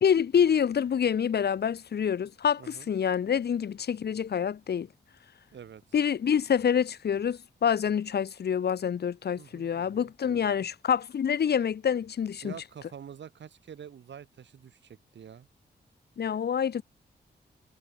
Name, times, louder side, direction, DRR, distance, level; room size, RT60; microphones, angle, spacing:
voice 1, 0.0-4.9 5.9-12.5 16.2-16.8, left 8 dB, 65° left, 1.5 m, -27 dB
voice 2, 2.6-2.9 5.5-5.8 9.4-10.6 12.4-15.5, right 8 dB, 85° right, 6.6 m, -47 dB
wide cardioid pair, 165°, 18 cm